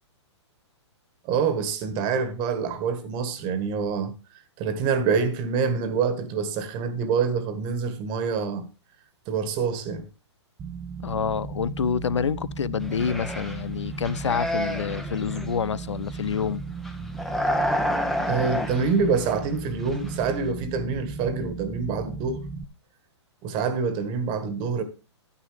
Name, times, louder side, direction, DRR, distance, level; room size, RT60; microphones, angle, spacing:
voice 1, 1.3-4.1 4.6-8.7 9.3-10.0 18.2-22.4 23.4-24.8, right 5 dB, 30° right, 1.6 m, -26 dB
sound 1, 10.6-22.6, right 4 dB, 15° right, 0.8 m, -36 dB
voice 2, 11.0-16.6, left 7 dB, 80° left, 0.4 m, -27 dB
sound 2, 12.8-13.6 13.9-15.5 16.0-16.4 16.7-19.5 19.8-20.3, equal, ahead, 1.0 m, -30 dB
10.5 x 9.8 x 3.4 m
figure-of-eight pair, 120°, 15 cm